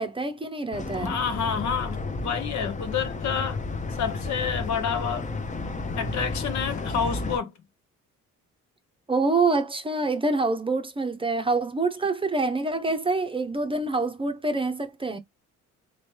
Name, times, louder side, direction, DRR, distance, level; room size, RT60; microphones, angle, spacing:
voice 1, 0.0-1.1 9.1-15.2, right 3 dB, 15° right, 0.7 m, -26 dB
sound 1, 0.7-7.4, left 3 dB, 25° left, 0.7 m, -32 dB
voice 2, 0.9-3.6 4.0-5.3 6.0-7.5, left 7 dB, 70° left, 1.0 m, -29 dB
3.1 x 2.9 x 3.1 m
cardioid pair, 90°, 30 cm